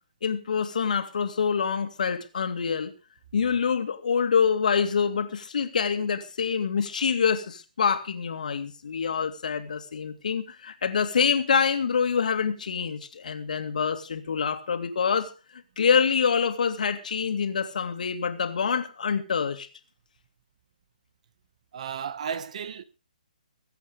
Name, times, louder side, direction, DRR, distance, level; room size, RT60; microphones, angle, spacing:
voice 1, 0.2-2.9 3.3-19.7, left 6 dB, 65° left, 2.4 m, -26 dB
voice 2, 21.7-22.8, right 7 dB, 50° right, 1.4 m, -33 dB
22.5 x 8.5 x 5.3 m
hypercardioid pair, 145°, 5 cm